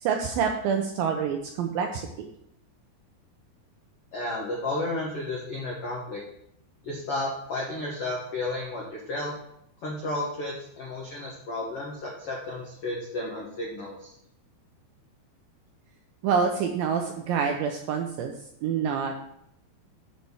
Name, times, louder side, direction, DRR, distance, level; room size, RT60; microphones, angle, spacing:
voice 1, 0.0-2.0 16.2-18.3 18.6-19.2, right 6 dB, 80° right, 3 dB, 2.1 m, -27 dB
voice 2, 4.1-6.2 6.8-9.3 9.8-14.1, left 2 dB, 85° left, -3 dB, 1.3 m, -32 dB
7.6 x 4.2 x 6.9 m, 0.75 s
omnidirectional pair, 4.8 m